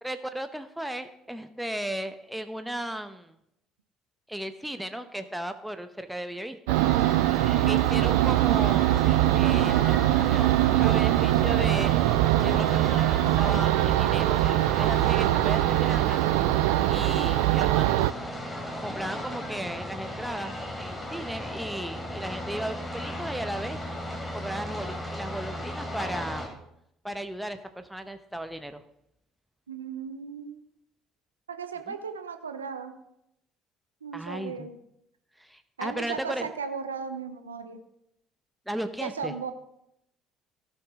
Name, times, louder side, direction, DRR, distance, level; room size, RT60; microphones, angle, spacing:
voice 1, 0.0-3.4 4.3-6.8 7.6-8.9 9.3-12.0 12.4-16.3 16.9-18.1 18.8-23.8 24.3-26.5 27.0-28.8 31.9-32.0 34.1-34.7 35.4-36.5 38.7-39.3, right 1 dB, 5° right, 8 dB, 0.9 m, -35 dB
sound 1, 6.7-26.5, equal, 15° left, 3.3 m, -35 dB
sound 2, 6.7-18.1, right 16 dB, 75° right, 0.4 m, -22 dB
voice 2, 29.7-30.6 31.5-32.9 34.0-34.8 35.8-37.8 39.0-39.5, right 6 dB, 90° right, 8 dB, 0.8 m, -36 dB
17.5 x 6.3 x 3.7 m, 0.79 s
hypercardioid pair, 55°, 0 cm